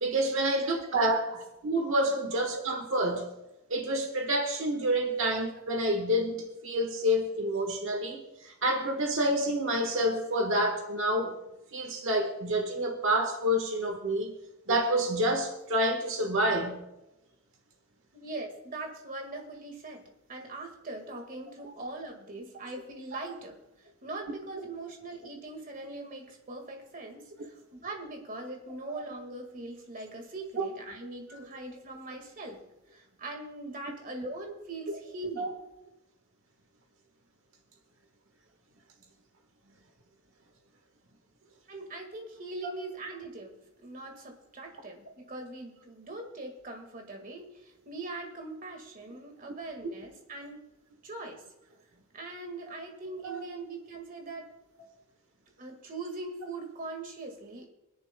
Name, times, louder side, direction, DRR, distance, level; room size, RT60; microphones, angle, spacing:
voice 1, 0.0-1.4 1.6-3.3 3.7-11.4 11.7-14.3 14.7-16.9 30.6-30.7 31.3-31.4 34.9-35.0 35.4-35.5 53.2-53.4, right 1 dB, 60° right, 3 dB, 1.4 m, -28 dB
voice 2, 18.1-32.6 32.9-35.5 41.7-50.6 51.0-51.4 52.1-54.5 55.6-57.7, right 2 dB, 40° right, 3 dB, 1.8 m, -41 dB
25.5 x 10.5 x 2.2 m, 0.94 s
head